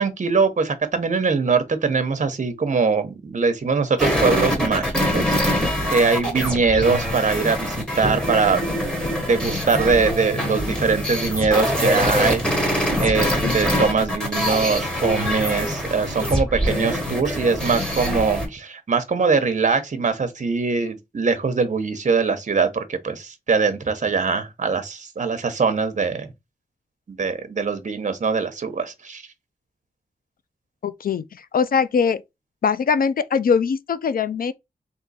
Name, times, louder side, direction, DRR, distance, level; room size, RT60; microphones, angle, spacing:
voice 1, 0.0-8.9 9.3-26.3 27.1-29.2, right 4 dB, 55° right, 0.8 m, -22 dB
sound 1, 4.0-18.5, equal, 5° left, 1.4 m, -24 dB
voice 2, 30.8-32.2 32.6-34.5, left 6 dB, 70° left, 0.4 m, -22 dB
3.6 x 2.8 x 4.1 m
wide cardioid pair, 105°, 15 cm